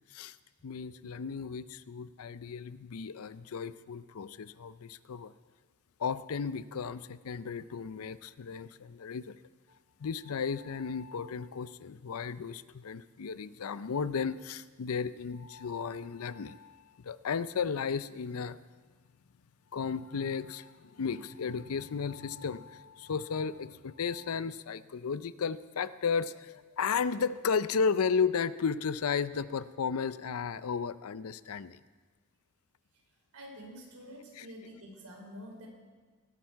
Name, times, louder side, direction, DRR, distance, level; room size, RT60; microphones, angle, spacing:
voice 1, 0.6-5.3 6.0-9.4 10.0-18.6 19.7-31.8 34.3-34.5, left 6 dB, 80° left, 15 dB, 0.5 m, -34 dB
voice 2, 33.3-35.7, equal, 90° right, 1 dB, 3.9 m, -47 dB
19.5 x 12.0 x 4.6 m, 1.4 s
head